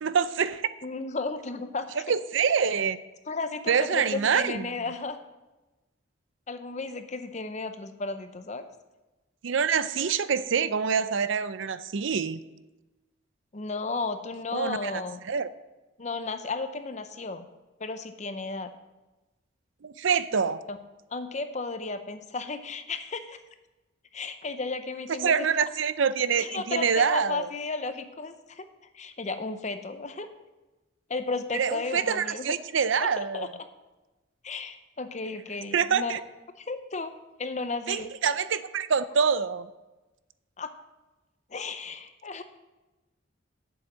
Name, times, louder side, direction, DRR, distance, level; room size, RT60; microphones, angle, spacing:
voice 1, 0.0-0.7 2.1-3.0 3.7-4.7 9.4-12.4 14.5-15.5 19.8-20.6 25.2-27.5 31.5-33.5 35.7-36.2 37.9-39.7, right 6 dB, 70° right, 14 dB, 0.5 m, -26 dB
voice 2, 0.8-1.9 3.3-5.2 6.5-8.7 10.0-10.1 13.5-15.2 16.0-17.4 17.8-18.7 20.7-20.8 21.1-23.4 24.1-25.5 26.4-28.6 28.9-30.3 31.1-32.5 33.0-33.5 34.4-36.2 36.6-37.1 37.4-38.1 40.6-40.7 41.5-42.4, left 3 dB, 35° left, 9 dB, 0.7 m, -34 dB
8.1 x 7.1 x 7.5 m, 1.1 s
head